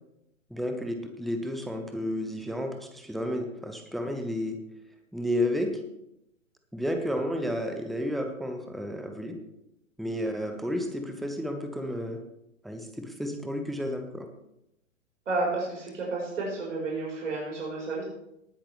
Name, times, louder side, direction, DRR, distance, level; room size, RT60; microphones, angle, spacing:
voice 1, 0.5-4.6 5.1-5.7 6.7-9.4 10.0-12.2 12.6-14.3, equal, ahead, 5 dB, 0.4 m, -31 dB
voice 2, 15.3-18.0, right 3 dB, 65° right, -3 dB, 4.9 m, -31 dB
18.5 x 10.0 x 3.4 m, 0.84 s
figure-of-eight pair, 115°, 40 cm